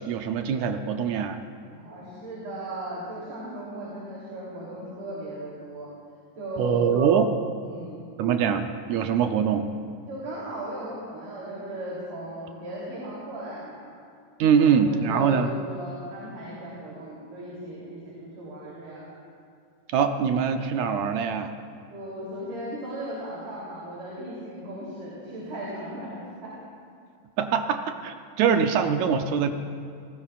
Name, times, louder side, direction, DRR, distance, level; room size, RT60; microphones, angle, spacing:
voice 1, 0.1-1.4 6.6-7.3 8.2-9.7 14.4-15.5 19.9-21.5 27.4-29.5, right 7 dB, 75° right, 6 dB, 1.8 m, -23 dB
voice 2, 1.7-5.9 6.4-6.8 7.6-8.0 10.1-13.9 14.5-19.0 21.9-26.5, right 1 dB, 55° right, -7 dB, 4.5 m, -37 dB
29.0 x 19.5 x 2.5 m, 2.3 s
omnidirectional pair, 3.9 m